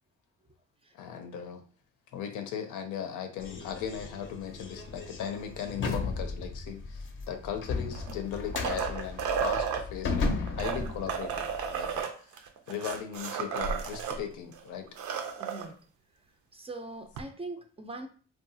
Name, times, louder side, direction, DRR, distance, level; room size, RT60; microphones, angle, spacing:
voice 1, 0.9-1.6 2.1-12.1 12.7-14.9, left 8 dB, 85° left, 6 dB, 0.6 m, -38 dB
sound 1, 3.4-12.0, left 3 dB, 40° left, 0.5 m, -35 dB
sound 2, 7.9-9.8 10.5-14.2 14.5-14.6 14.9-15.7 17.2-17.3, right 6 dB, 80° right, 0.5 m, -33 dB
voice 2, 15.4-15.8 16.5-18.1, right 2 dB, 20° right, 5 dB, 0.4 m, -41 dB
2.7 x 2.3 x 2.6 m, 0.40 s
cardioid pair, 90°, 30 cm